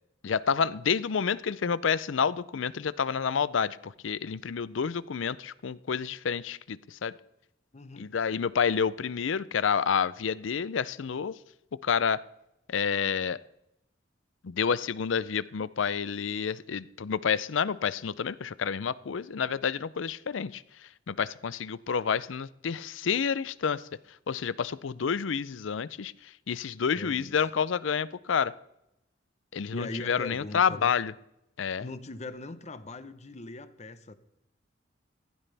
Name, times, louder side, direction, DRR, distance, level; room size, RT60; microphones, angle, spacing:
voice 1, 0.2-7.1 8.0-11.3 11.7-12.2 12.7-13.4 14.4-23.9 24.3-28.5 29.5-31.1 31.6-31.8, left 6 dB, 85° left, 19 dB, 0.5 m, -29 dB
voice 2, 7.7-8.1 26.9-27.4 29.7-30.9 31.8-34.1, left 2 dB, 35° left, 12 dB, 0.9 m, -40 dB
15.5 x 15.5 x 3.4 m, 0.85 s
head